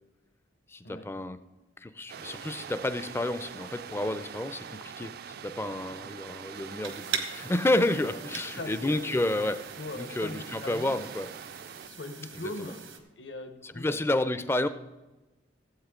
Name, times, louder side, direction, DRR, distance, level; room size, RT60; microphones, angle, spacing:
voice 1, 0.7-1.4 1.8-9.6 10.0-11.3 12.6-12.7 13.8-14.7, left 1 dB, 15° left, 12 dB, 0.4 m, -30 dB
sound 1, 2.1-11.9, right 7 dB, 55° right, 0.4 m, -44 dB
sound 2, 6.8-13.0, right 6 dB, 85° right, 1.2 m, -41 dB
voice 2, 8.5-9.2 9.8-11.0 11.9-12.9 13.2-14.3, left 2 dB, 70° left, 7 dB, 1.1 m, -40 dB
16.0 x 7.9 x 3.7 m, 1.1 s
head